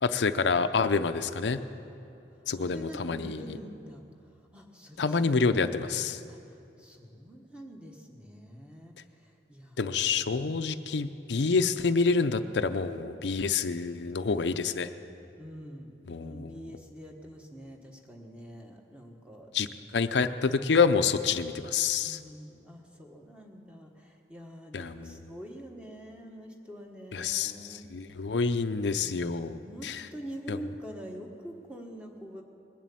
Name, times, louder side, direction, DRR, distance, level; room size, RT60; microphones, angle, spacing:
voice 1, 0.0-1.6 2.5-3.6 5.0-6.2 9.8-14.9 16.1-16.7 19.5-19.7 19.9-22.2 24.7-25.1 27.1-30.0 30.5-30.6, left 5 dB, 90° left, 9 dB, 0.6 m, -27 dB
voice 2, 2.6-4.0 4.5-5.7 6.3-10.6 15.4-15.9 16.2-19.5 22.0-27.9 29.0-32.4, equal, 5° right, 1 dB, 1.3 m, -45 dB
20.5 x 7.4 x 8.5 m, 2.7 s
head